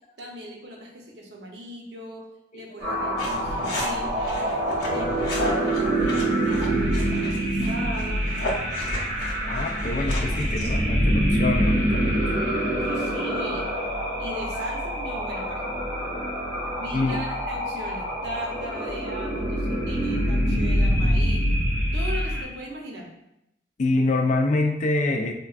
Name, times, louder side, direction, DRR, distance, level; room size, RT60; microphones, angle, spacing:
voice 1, 0.2-2.2 2.5-4.6 4.9-8.3 12.8-13.6 14.2-15.6 16.8-21.4 21.9-23.1, right 1 dB, 70° right, 0 dB, 0.6 m, -38 dB
sound 1, 2.8-22.4, right 1 dB, 20° right, 0.8 m, -25 dB
sound 2, 3.2-10.7, left 1 dB, 80° left, 0.8 m, -33 dB
voice 2, 9.5-12.4 14.5-14.7 16.9-17.2 23.8-25.3, left 2 dB, 40° left, 3 dB, 0.3 m, -26 dB
4.3 x 2.2 x 2.3 m, 0.83 s
head